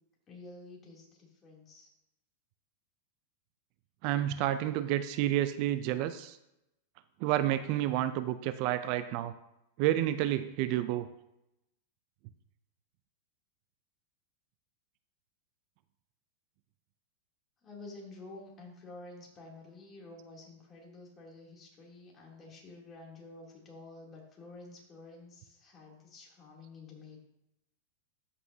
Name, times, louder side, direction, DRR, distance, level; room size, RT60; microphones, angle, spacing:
voice 1, 0.3-1.9 17.6-27.2, left 2 dB, 25° left, -2 dB, 2.9 m, -50 dB
voice 2, 4.0-6.4 7.2-9.3 9.8-11.1, right 13 dB, 50° right, 12 dB, 0.4 m, -30 dB
13.5 x 5.5 x 2.8 m, 0.86 s
hypercardioid pair, 125°, 0 cm